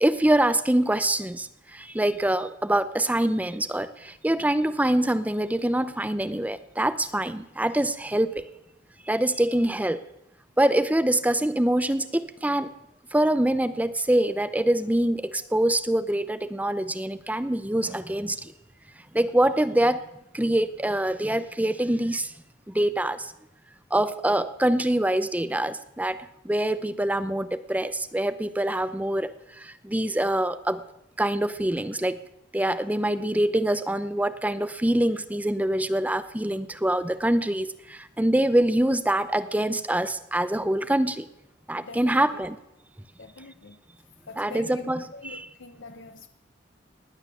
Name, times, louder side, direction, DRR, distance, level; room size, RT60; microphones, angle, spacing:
voice 1, 0.0-8.5 9.1-10.0 10.6-12.7 13.1-18.5 19.1-20.0 20.3-22.3 22.7-23.3 23.9-26.2 26.4-29.3 29.6-30.8 31.2-32.2 32.5-41.3 41.7-42.5 44.4-45.5, right 1 dB, 10° right, 0.7 m, -25 dB
voice 2, 41.8-42.4 43.2-43.8 44.3-46.3, left 4 dB, 80° left, 0.9 m, -44 dB
19.0 x 9.1 x 7.1 m
head